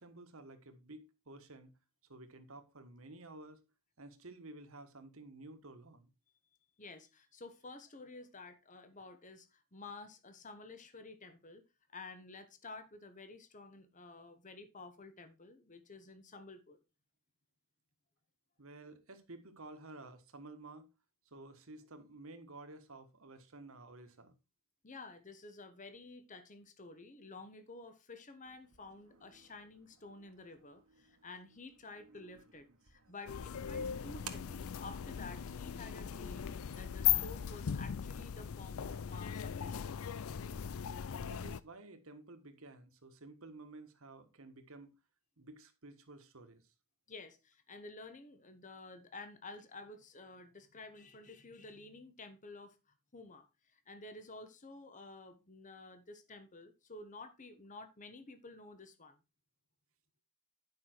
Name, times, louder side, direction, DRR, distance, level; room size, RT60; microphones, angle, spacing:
voice 1, 0.0-1.7 2.1-3.6 4.0-6.1 18.6-20.9 21.2-24.3 41.2-44.9 45.4-46.7, right 2 dB, 70° right, 1.5 m, -53 dB
voice 2, 6.8-11.6 11.9-16.8 24.8-40.1 47.1-52.8 53.1-59.2, left 3 dB, 35° left, 1.1 m, -51 dB
sound 1, 28.4-38.3, right 8 dB, 85° right, 1.5 m, -58 dB
sound 2, 33.3-41.6, left 9 dB, 70° left, 0.5 m, -38 dB
10.0 x 5.7 x 4.5 m
head